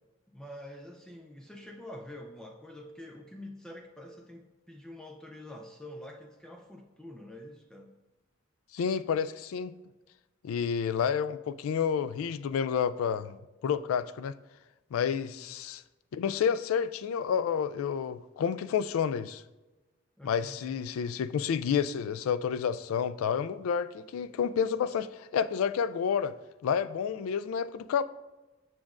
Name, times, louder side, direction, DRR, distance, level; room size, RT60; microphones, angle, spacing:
voice 1, 0.3-7.9 15.3-15.5 20.2-20.8, left 1 dB, 5° left, 0.4 m, -46 dB
voice 2, 8.7-9.7 10.4-13.4 13.6-14.4 14.9-15.8 16.1-19.4 20.2-26.3 26.6-28.0, left 7 dB, 85° left, 0.3 m, -30 dB
7.3 x 5.9 x 2.5 m
head